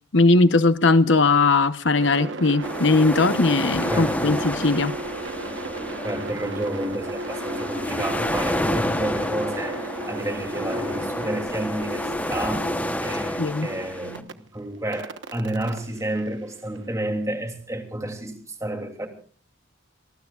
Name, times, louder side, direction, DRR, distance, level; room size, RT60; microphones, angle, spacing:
voice 1, 0.1-4.9 13.4-13.7, left 3 dB, 65° left, 1.0 m, -19 dB
sound 1, 1.9-14.3 14.9-17.0, right 2 dB, 65° right, 1.2 m, -35 dB
sound 2, 2.6-14.2, left 1 dB, 10° left, 1.0 m, -29 dB
voice 2, 3.9-4.3 6.0-12.7 13.0-19.1, right 1 dB, 15° right, 3.0 m, -30 dB
28.0 x 20.0 x 2.5 m
head